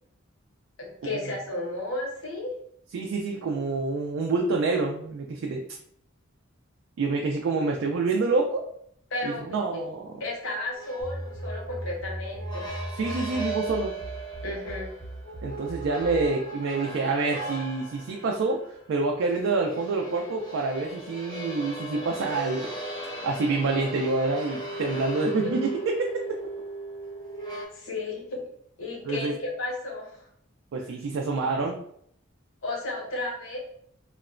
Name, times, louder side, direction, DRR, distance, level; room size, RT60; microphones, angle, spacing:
voice 1, 0.8-2.5 9.1-9.9 10.2-12.7 14.4-14.9 25.4-25.5 27.7-28.4 28.8-30.3 32.6-33.6, left 2 dB, 75° left, -1 dB, 0.8 m, -33 dB
voice 2, 2.9-5.6 7.0-8.6 9.2-10.1 13.0-13.9 15.4-22.7 23.2-26.0 29.1-29.3 30.7-31.8, right 3 dB, 70° right, 1 dB, 0.3 m, -27 dB
sound 1, 10.8-27.7, right 2 dB, 20° left, 0.6 m, -37 dB
sound 2, 11.0-16.3, right 1 dB, 30° right, 0.8 m, -38 dB
2.8 x 2.1 x 2.4 m, 0.69 s
head